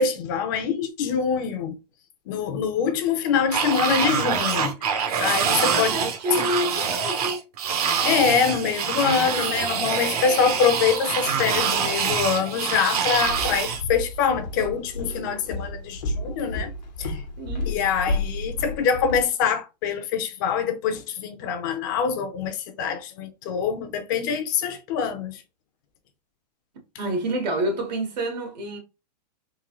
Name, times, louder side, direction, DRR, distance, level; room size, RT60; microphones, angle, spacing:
voice 1, 0.0-1.8 2.3-4.9 5.2-5.9 6.3-6.5 8.0-16.7 17.0-17.2 17.7-25.4, left 6 dB, 30° left, 0.5 m, -24 dB
sound 1, 3.5-13.8, right 7 dB, 65° right, 0.9 m, -25 dB
voice 2, 5.7-7.4 17.4-17.8 27.0-28.8, right 1 dB, 80° right, 1.8 m, -28 dB
Walk footsteps, 13.1-19.3, left 2 dB, 85° left, 1.0 m, -31 dB
3.7 x 2.6 x 2.9 m
supercardioid pair, 170°, 21 cm